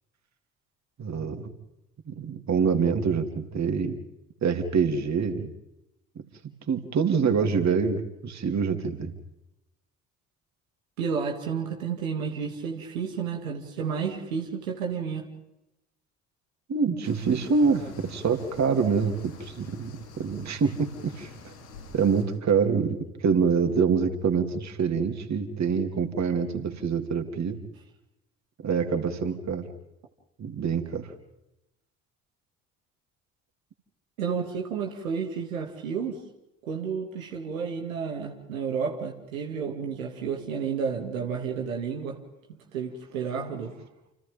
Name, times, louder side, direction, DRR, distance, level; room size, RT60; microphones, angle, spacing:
voice 1, 1.0-1.5 2.1-4.0 4.4-5.5 6.1-6.2 6.7-9.1 16.7-21.5 21.9-27.6 28.6-29.7 30.4-31.1, right 5 dB, 40° right, 5 dB, 3.3 m, -26 dB
voice 2, 11.0-15.3 34.2-36.2 36.6-42.2 42.7-43.8, right 6 dB, 75° right, 2 dB, 2.6 m, -31 dB
sound 1, 17.0-22.2, left 3 dB, 80° left, 7.4 m, -47 dB
29.5 x 29.5 x 3.8 m, 0.90 s
figure-of-eight pair, 50°, 40 cm